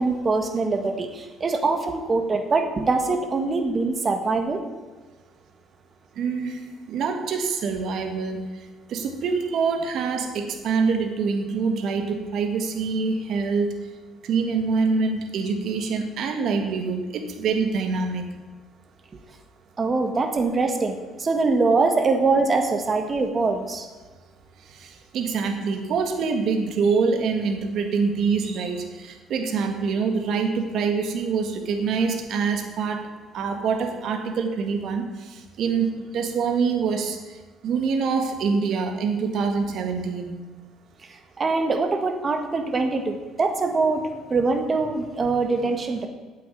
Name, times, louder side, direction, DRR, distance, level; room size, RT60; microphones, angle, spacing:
voice 1, 0.0-4.6 19.8-23.9 41.4-44.0 44.3-46.1, right 3 dB, 25° right, 6 dB, 1.6 m, -23 dB
voice 2, 6.2-8.4 8.9-13.7 14.2-18.3 24.7-33.1 33.3-35.9 36.1-37.2 37.6-40.3, right 5 dB, 60° right, 5 dB, 1.9 m, -25 dB
9.7 x 7.6 x 9.3 m, 1.3 s
cardioid pair, 130°, 0 cm